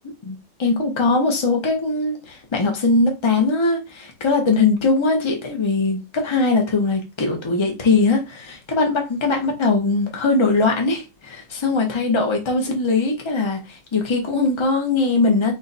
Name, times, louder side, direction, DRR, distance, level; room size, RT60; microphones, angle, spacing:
voice 1, 0.2-15.5, left 3 dB, 20° left, 0.8 m, -20 dB
3.9 x 2.9 x 4.1 m
omnidirectional pair, 2.0 m